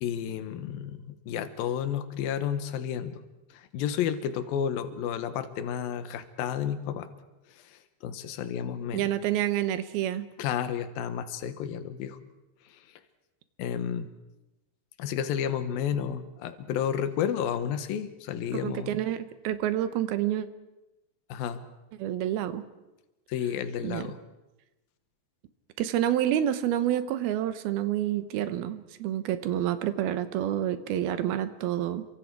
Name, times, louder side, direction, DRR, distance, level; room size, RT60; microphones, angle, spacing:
voice 1, 0.0-3.2 3.5-7.1 8.0-9.1 10.4-12.2 13.6-14.1 15.0-18.9 21.3-21.6 23.3-24.2, left 8 dB, 75° left, 10 dB, 2.9 m, -31 dB
voice 2, 8.9-10.3 18.6-20.5 22.0-22.6 23.8-24.0 25.8-32.1, right 11 dB, 85° right, 11 dB, 2.9 m, -28 dB
29.0 x 24.5 x 4.7 m, 1.0 s
omnidirectional pair, 4.3 m